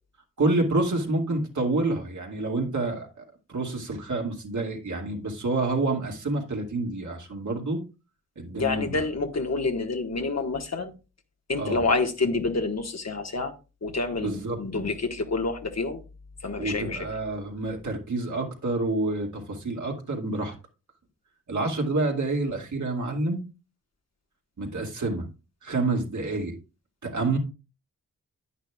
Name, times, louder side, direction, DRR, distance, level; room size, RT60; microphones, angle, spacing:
voice 1, 0.4-3.1 3.5-7.8 8.4-9.0 11.6-11.8 14.2-14.6 16.6-20.6 21.5-23.4 24.6-25.3 25.6-26.6 27.0-27.4, right 2 dB, 60° right, 2.3 m, -28 dB
voice 2, 8.6-10.9 11.5-13.5 13.8-16.0 16.4-17.1, left 3 dB, 50° left, 1.6 m, -28 dB
11.0 x 9.1 x 2.4 m
cardioid pair, 50°, 33 cm